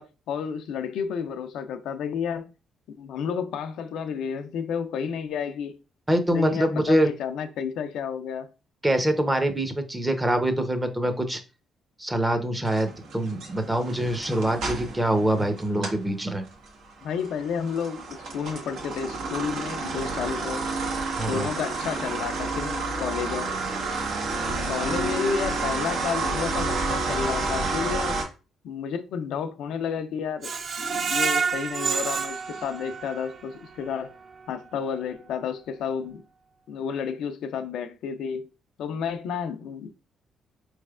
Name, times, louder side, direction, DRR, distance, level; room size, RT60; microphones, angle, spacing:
voice 1, 0.0-2.5 3.0-5.7 6.3-8.5 17.0-20.6 21.2-23.5 24.7-28.2 28.6-30.5 30.8-34.1 34.5-36.2 36.7-38.5 38.8-39.9, left 7 dB, 80° left, 0.4 m, -31 dB
voice 2, 6.1-7.1 8.8-11.4 12.0-16.4 21.2-21.5, right 1 dB, 15° right, 0.6 m, -24 dB
sound 1, 12.7-16.1 16.4-28.2, right 3 dB, 80° right, 1.0 m, -30 dB
Screech, 30.4-33.4 33.8-33.9 34.3-34.4, right 5 dB, 50° right, 0.3 m, -28 dB
4.1 x 3.1 x 2.3 m
cardioid pair, 90°, 0 cm